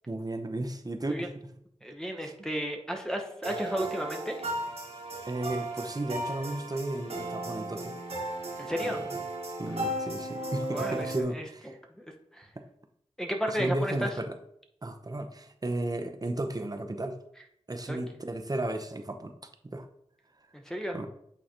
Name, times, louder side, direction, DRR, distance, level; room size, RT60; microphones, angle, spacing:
voice 1, 0.1-1.3 2.2-2.3 5.3-8.0 8.8-9.0 9.6-11.7 13.5-14.3 14.8-17.2 17.7-19.3 19.6-19.9 20.9-21.1, right 1 dB, 35° right, 5 dB, 0.8 m, -34 dB
voice 2, 1.8-4.5 8.6-9.0 10.7-11.4 12.0-12.1 12.3-12.5 13.2-14.1 17.9-18.0 20.5-21.0, equal, 5° left, 1 dB, 0.9 m, -33 dB
sound 1, 3.4-11.2, right 1 dB, 65° right, 1.5 m, -36 dB
8.7 x 4.0 x 3.0 m, 0.72 s
wide cardioid pair, 60°, 12 cm